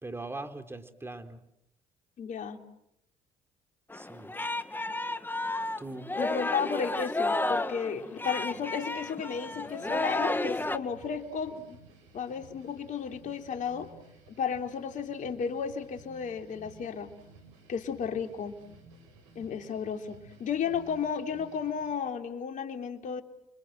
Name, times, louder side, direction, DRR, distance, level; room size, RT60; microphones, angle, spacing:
voice 1, 0.0-1.4 3.9-4.3 5.8-6.1, right 2 dB, 15° right, 7 dB, 4.0 m, -41 dB
voice 2, 2.2-2.6 6.2-11.8 12.1-13.9 14.3-17.1 17.7-18.6 19.3-23.2, left 6 dB, 60° left, 5 dB, 3.3 m, -33 dB
Singing, 3.9-10.8, left 2 dB, 15° left, 1.8 m, -32 dB
sound 1, 8.3-22.0, right 2 dB, 90° right, 6.0 m, -55 dB
30.0 x 25.0 x 7.8 m, 0.80 s
hypercardioid pair, 60°, 15 cm